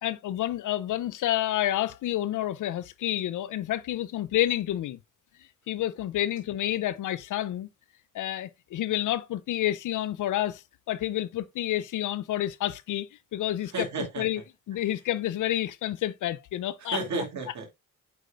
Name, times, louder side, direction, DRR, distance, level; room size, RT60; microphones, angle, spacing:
voice 1, 0.0-5.0 5.7-7.7 8.1-10.6 10.9-13.9 14.2-14.4 14.7-17.0, left 13 dB, 70° left, 0.6 m, -29 dB
voice 2, 13.7-14.2 16.8-17.7, right 3 dB, 60° right, 2.6 m, -32 dB
7.8 x 5.2 x 2.4 m
cardioid pair, 80°, 32 cm